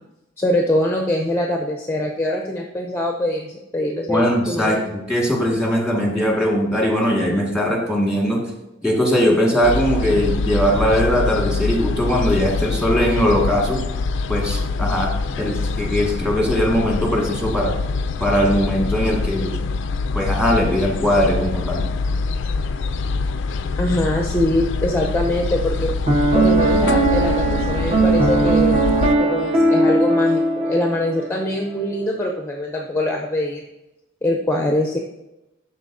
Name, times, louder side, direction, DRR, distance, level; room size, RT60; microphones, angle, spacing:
voice 1, 0.4-4.8 23.8-25.9 26.3-28.9 29.2-33.6 34.2-35.0, left 1 dB, 10° left, 1 dB, 0.6 m, -23 dB
voice 2, 4.1-8.4 8.8-13.8 14.3-15.1 15.4-17.8 18.2-19.5 20.1-21.9, equal, 5° right, -2 dB, 1.7 m, -20 dB
sound 1, 9.6-29.2, left 4 dB, 65° left, 0.3 m, -24 dB
Piano, 26.1-31.4, right 2 dB, 35° right, 1.0 m, -18 dB
12.0 x 4.2 x 2.6 m, 0.94 s
head